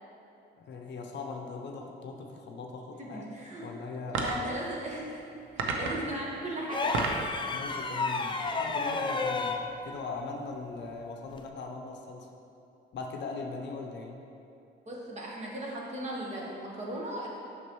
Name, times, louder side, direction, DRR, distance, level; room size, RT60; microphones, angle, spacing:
voice 1, 0.6-3.3 3.6-4.3 7.5-12.3 12.9-14.2, left 4 dB, 65° left, 2 dB, 0.7 m, -40 dB
voice 2, 3.0-3.7 4.1-5.2 5.5-7.1 14.9-17.3, right 1 dB, 35° right, -4 dB, 1.4 m, -37 dB
sound 1, 4.0-4.5 5.6-6.1 6.7-7.3, right 3 dB, 80° right, 0.7 m, -31 dB
High Slide and wail, 6.7-9.7 11.3-11.5, left 4 dB, 25° left, 0.4 m, -31 dB
6.1 x 5.9 x 3.1 m, 2.7 s
cardioid pair, 90°, 20 cm